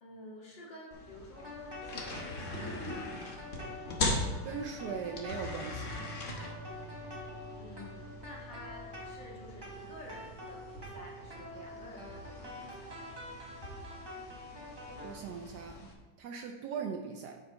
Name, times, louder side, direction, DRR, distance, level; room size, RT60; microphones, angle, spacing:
voice 1, 0.0-3.1 7.6-12.9, left 1 dB, 75° left, -3 dB, 2.5 m, -50 dB
sound 1, 0.9-15.9, left 2 dB, 55° left, 1.5 m, -41 dB
sound 2, 1.4-15.2, left 1 dB, 15° right, 1.0 m, -47 dB
voice 2, 4.4-5.9 15.0-17.4, right 6 dB, 70° right, 4 dB, 1.1 m, -40 dB
sound 3, 5.7-13.0, right 1 dB, 30° left, 3.3 m, -53 dB
9.2 x 5.1 x 4.3 m, 1.2 s
omnidirectional pair, 2.0 m